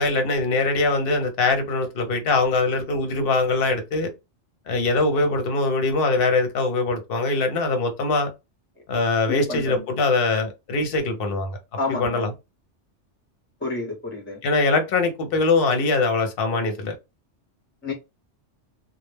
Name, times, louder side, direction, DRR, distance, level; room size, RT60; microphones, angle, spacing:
voice 1, 0.0-4.1 4.7-8.3 8.9-11.6 12.0-12.3 14.4-16.9, left 3 dB, 60° left, 0.8 m, -22 dB
voice 2, 9.3-9.8 11.8-12.2 13.6-14.4 17.8-17.9, left 3 dB, 15° left, 0.6 m, -29 dB
2.2 x 2.1 x 3.1 m
omnidirectional pair, 1.2 m